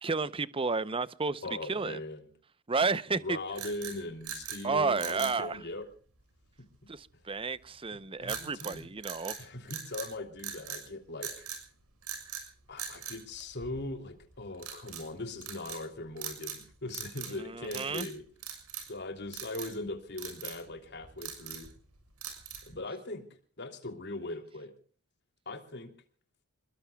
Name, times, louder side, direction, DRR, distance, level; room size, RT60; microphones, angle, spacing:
voice 1, 0.0-1.4 1.7-2.0 2.7-3.4 4.6-5.6 6.9-9.4 17.3-18.1, right 4 dB, 25° right, 0.7 m, -31 dB
voice 2, 1.4-2.3 3.1-5.8 8.2-8.9 9.4-11.5 12.7-18.2 18.9-21.7 22.6-23.3 23.6-24.7 25.5-25.9, left 2 dB, 50° left, 3.0 m, -40 dB
sound 1, 3.5-4.6 5.0-5.4 8.3-8.8 9.0-10.1 10.4-10.8 11.2-11.6 12.0-12.5 12.8-14.0 14.6-15.1 15.4-15.8 16.2-16.6 16.9-17.4 17.6-18.1 18.4-19.0 19.3-19.7 20.2-20.6 21.0-21.7 22.2-22.7, right 8 dB, 85° right, 6.5 m, -41 dB
28.0 x 21.0 x 2.3 m
head